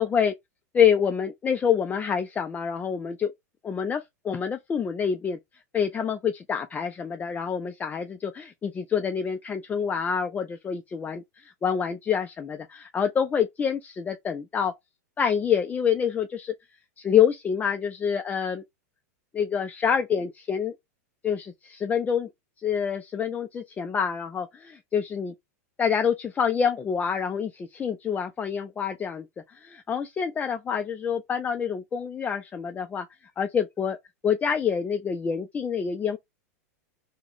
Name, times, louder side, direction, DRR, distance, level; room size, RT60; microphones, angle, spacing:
voice 1, 0.0-0.3 0.7-3.3 3.6-5.4 5.7-14.7 15.2-16.5 17.0-18.6 19.3-20.7 21.2-22.3 22.6-25.3 25.8-33.1 33.4-34.0 34.2-36.2, left 7 dB, 20° left, 0.4 m, -27 dB
2.9 x 2.1 x 3.8 m
hypercardioid pair, 105°, 9 cm